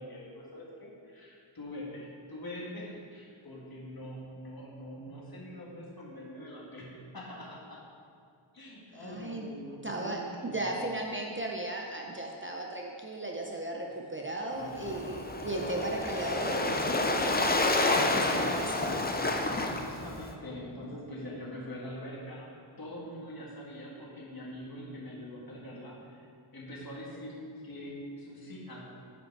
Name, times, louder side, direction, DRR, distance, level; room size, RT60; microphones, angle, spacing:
voice 1, 0.0-7.8 8.5-10.7 14.5-15.5 19.2-22.5 22.8-28.8, equal, 45° left, -4 dB, 1.8 m, -44 dB
voice 2, 9.0-9.5 9.8-19.0, right 2 dB, 25° right, 0 dB, 0.7 m, -36 dB
Waves surf, 14.6-20.3, left 2 dB, 20° left, 0.6 m, -29 dB
9.0 x 5.2 x 4.6 m, 2.3 s
wide cardioid pair, 85°, 49 cm